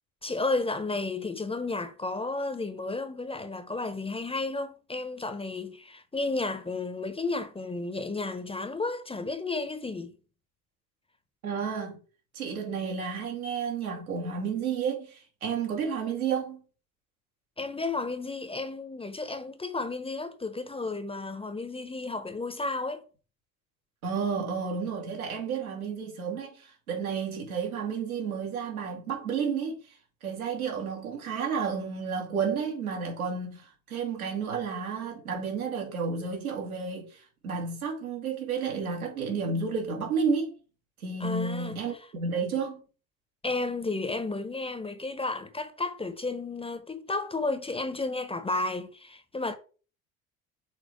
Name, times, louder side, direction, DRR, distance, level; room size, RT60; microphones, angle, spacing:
voice 1, 0.2-10.1 17.6-23.0 41.2-41.7 43.4-49.6, left 3 dB, 15° left, 1.1 m, -32 dB
voice 2, 11.4-12.0 12.3-16.6 24.0-40.5 41.0-42.8, right 5 dB, 80° right, 2.8 m, -31 dB
6.6 x 4.4 x 4.6 m
hypercardioid pair, 65°, 42 cm